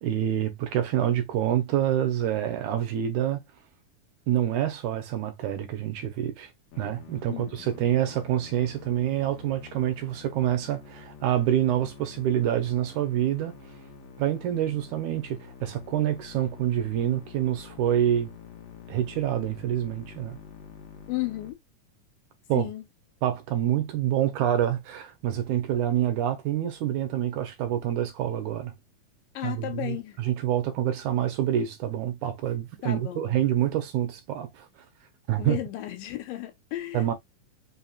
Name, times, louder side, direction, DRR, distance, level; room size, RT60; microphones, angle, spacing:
voice 1, 0.0-3.4 4.3-6.5 6.8-13.5 14.2-18.3 18.9-20.4 22.5-22.7 23.2-28.7 29.4-34.7 35.3-35.6 36.9-37.1, right 11 dB, 75° right, 2.1 m, -27 dB
Musical instrument, 6.7-21.5, left 6 dB, 65° left, 2.3 m, -47 dB
voice 2, 7.3-7.7 21.1-21.6 22.6-22.9 29.3-30.2 32.8-33.4 35.4-37.1, left 15 dB, 90° left, 2.6 m, -34 dB
5.5 x 2.9 x 2.3 m
omnidirectional pair, 3.8 m